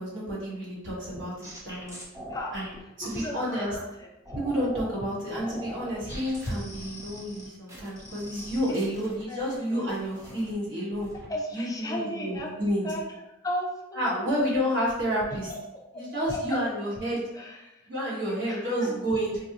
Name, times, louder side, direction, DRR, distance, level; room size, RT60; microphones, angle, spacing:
voice 1, 0.0-1.3 1.6-2.0 2.5-2.7 3.0-3.7 4.3-11.1 11.5-12.9 13.9-15.5 15.9-17.2 17.9-19.4, equal, 70° right, -5 dB, 1.3 m, -30 dB
sound 1, 0.9-3.8 4.3-4.9 5.3-9.6 9.9-10.5 10.9-11.3, equal, 15° right, 0.8 m, -43 dB
voice 2, 3.0-4.1 9.3-10.1 11.3-13.1 13.4-14.3 15.3-15.6 15.9-16.0 16.3-16.6 17.3-17.9 18.2-19.0, equal, 20° left, -1 dB, 0.5 m, -36 dB
4.1 x 2.0 x 2.8 m, 0.92 s
head